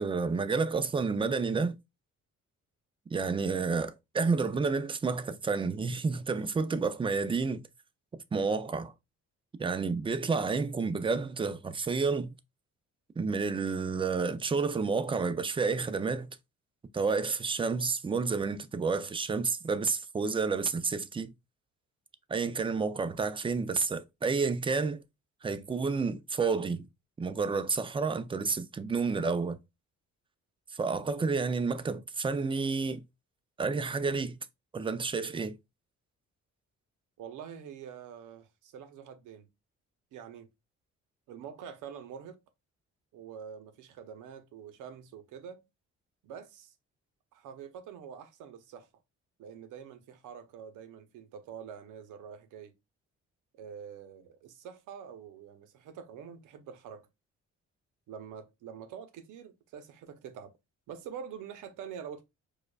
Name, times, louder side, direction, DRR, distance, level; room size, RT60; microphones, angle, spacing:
voice 1, 0.0-1.8 3.1-7.6 8.3-8.9 9.6-12.3 13.2-16.4 16.9-21.3 22.3-25.0 25.4-26.8 27.2-29.6 30.7-33.0 33.6-34.4 34.7-35.6, right 4 dB, 20° right, 0.4 m, -30 dB
voice 2, 37.2-39.5 40.1-40.5 41.3-42.4 43.1-45.6 46.2-46.7 47.3-48.9 49.4-52.7 53.5-57.1 58.1-60.5 60.9-62.2, right 7 dB, 85° right, 0.7 m, -46 dB
4.8 x 2.2 x 2.3 m
cardioid pair, 90°, 30 cm